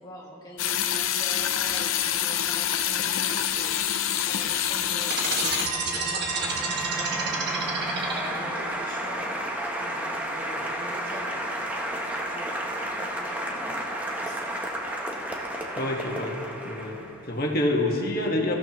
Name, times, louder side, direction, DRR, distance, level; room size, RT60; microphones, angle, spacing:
voice 1, 0.0-9.3 9.8-11.3 11.6-14.6, equal, 20° left, -3 dB, 1.7 m, -44 dB
sound 1, 0.6-5.7, left 10 dB, 90° left, 0.7 m, -26 dB
Applause, 4.9-17.3, right 1 dB, 10° right, 0.9 m, -32 dB
sound 2, 5.0-8.6, right 4 dB, 55° right, 1.6 m, -29 dB
voice 2, 15.8-18.6, left 1 dB, 45° left, 0 dB, 1.6 m, -27 dB
23.0 x 14.5 x 3.1 m, 3.0 s
head